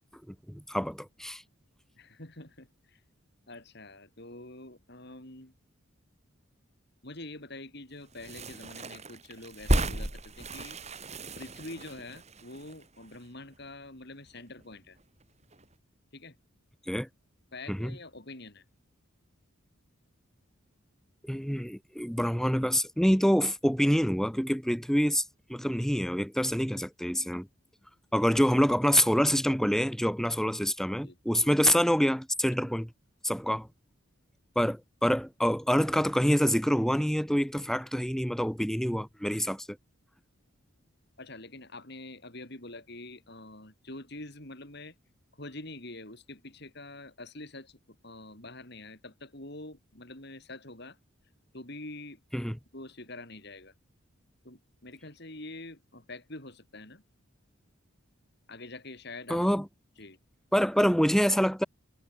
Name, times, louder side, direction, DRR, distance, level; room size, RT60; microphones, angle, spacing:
voice 1, 0.3-1.4 16.9-17.1 17.7-18.0 21.3-25.2 25.5-27.5 28.1-32.9 33.2-33.7 34.6-39.7 52.3-52.6 59.3-59.6 60.5-61.6, equal, ahead, 2.5 m, -26 dB
voice 2, 2.0-3.0 3.5-5.5 7.0-10.8 11.4-15.0 16.1-16.4 17.5-18.6 31.0-31.2 41.2-45.0 45.3-47.8 48.0-51.0 51.5-52.2 52.7-53.7 54.4-57.0 58.5-59.4 60.0-60.2, left 2 dB, 50° left, 4.3 m, -45 dB
sound 1, 8.1-13.7 14.0-14.1 14.3-15.2 15.5-15.7, right 1 dB, 30° right, 4.2 m, -34 dB
head